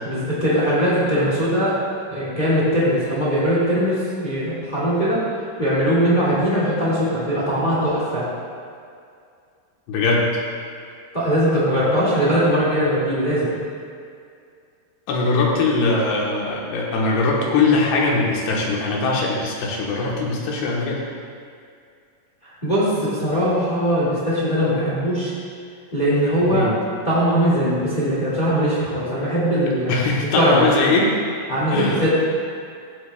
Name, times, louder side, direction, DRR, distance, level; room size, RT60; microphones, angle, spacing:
voice 1, 0.0-1.8 2.1-5.2 5.6-8.2 11.1-13.5 22.4-25.3 25.9-26.7 27.0-29.9 30.3-30.7 31.5-32.1, equal, 20° left, -9 dB, 1.3 m, -20 dB
voice 2, 9.9-10.3 15.1-21.0 26.5-26.7 29.9-31.1 31.7-32.1, left 3 dB, 90° left, -3 dB, 3.3 m, -21 dB
15.5 x 8.3 x 2.4 m, 2.3 s
omnidirectional pair, 4.6 m